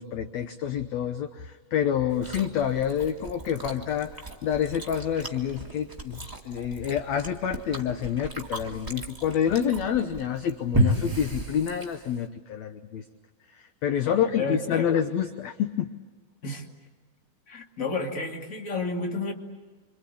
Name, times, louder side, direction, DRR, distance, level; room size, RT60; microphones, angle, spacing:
voice 1, 0.0-13.0 13.6-15.9, left 8 dB, 65° left, 8 dB, 2.0 m, -28 dB
Chewing mastication, 2.1-12.3, equal, 10° right, 1.3 m, -33 dB
voice 2, 14.1-14.9 16.4-16.7 17.5-19.3, left 3 dB, 25° left, 2 dB, 2.6 m, -31 dB
26.5 x 26.0 x 8.6 m, 1.4 s
omnidirectional pair, 3.9 m